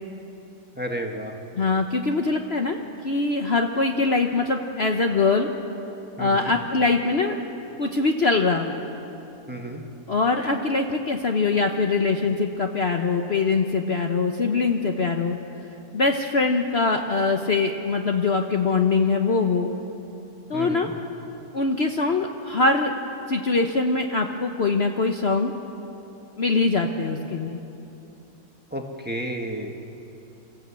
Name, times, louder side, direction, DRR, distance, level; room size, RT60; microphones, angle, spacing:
voice 1, 0.7-1.4 6.2-6.5 9.5-9.8 20.5-20.9 28.7-29.8, right 1 dB, 5° right, 2 dB, 1.6 m, -32 dB
voice 2, 1.5-5.5 6.2-7.4 7.8-8.7 10.1-15.4 15.9-19.7 20.5-20.9 21.5-22.9 23.3-25.5 26.4-27.6, left 3 dB, 45° left, 3 dB, 1.1 m, -23 dB
28.5 x 14.5 x 8.3 m, 2.9 s
omnidirectional pair, 1.6 m